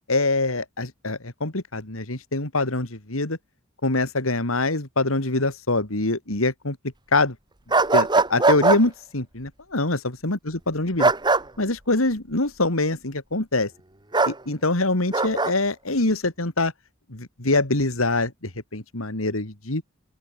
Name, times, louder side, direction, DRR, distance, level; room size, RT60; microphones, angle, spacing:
voice 1, 0.1-3.4 3.8-6.8 7.1-7.3 7.9-11.1 11.6-13.7 14.3-16.7 17.1-19.8, left 2 dB, 90° left, 3.2 m, -24 dB
sound 1, 7.7-8.8 11.0-11.4 14.1-14.4 15.1-15.5, right 3 dB, 20° right, 1.7 m, -19 dB
open air
head